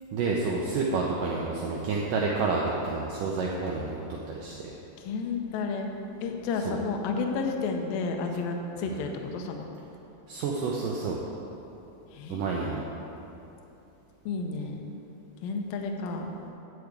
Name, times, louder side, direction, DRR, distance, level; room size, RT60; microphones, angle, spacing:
voice 1, 0.1-4.0 4.3-4.6 6.7-6.8 8.8-9.0 10.3-11.2 12.3-12.8, right 4 dB, 85° right, -2 dB, 1.9 m, -29 dB
voice 2, 5.0-5.9 6.2-9.7 12.1-12.4 14.3-14.8 15.4-16.3, left 4 dB, 80° left, 3 dB, 2.2 m, -31 dB
10.5 x 4.7 x 8.0 m, 3.0 s
omnidirectional pair, 4.7 m